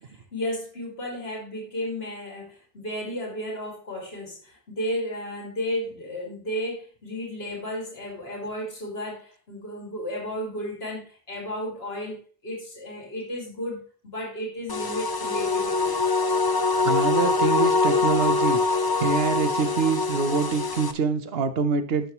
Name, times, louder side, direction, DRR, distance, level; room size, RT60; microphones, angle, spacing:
voice 1, 0.0-16.0, equal, 75° left, -1 dB, 2.7 m, -33 dB
sound 1, 14.7-20.9, left 3 dB, 30° left, 0.5 m, -23 dB
voice 2, 16.8-18.6 19.0-22.1, right 5 dB, 75° right, 11 dB, 1.2 m, -25 dB
12.0 x 7.0 x 3.1 m, 0.39 s
omnidirectional pair, 1.0 m